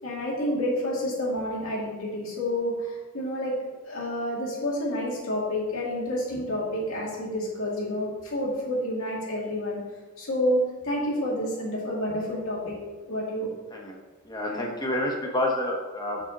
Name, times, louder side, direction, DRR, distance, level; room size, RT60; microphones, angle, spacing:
voice 1, 0.0-3.6 3.8-9.8 10.2-13.5 14.5-14.6, left 1 dB, 85° left, -4 dB, 2.4 m, -29 dB
voice 2, 14.2-16.2, left 1 dB, 20° left, 0 dB, 1.2 m, -29 dB
6.7 x 6.3 x 4.1 m, 1.3 s
head